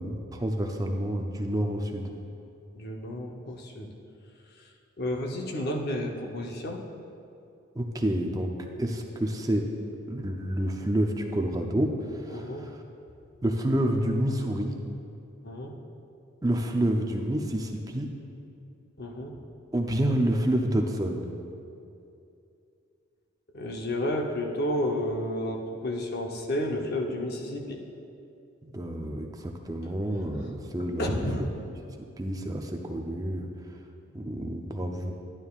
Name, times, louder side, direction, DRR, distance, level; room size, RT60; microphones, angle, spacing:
voice 1, 0.0-2.0 7.8-8.5 8.8-9.7 10.1-11.9 12.2-12.7 13.4-14.8 16.4-18.1 19.7-21.3 28.6-31.3 32.2-33.5 34.1-35.1, right 1 dB, 15° right, 3 dB, 0.5 m, -28 dB
voice 2, 2.7-3.9 5.0-6.8 12.3-12.6 15.4-15.7 19.0-19.3 23.5-27.8 31.0-31.5, left 1 dB, 50° left, 1 dB, 0.8 m, -31 dB
11.0 x 8.9 x 2.4 m, 2.7 s
head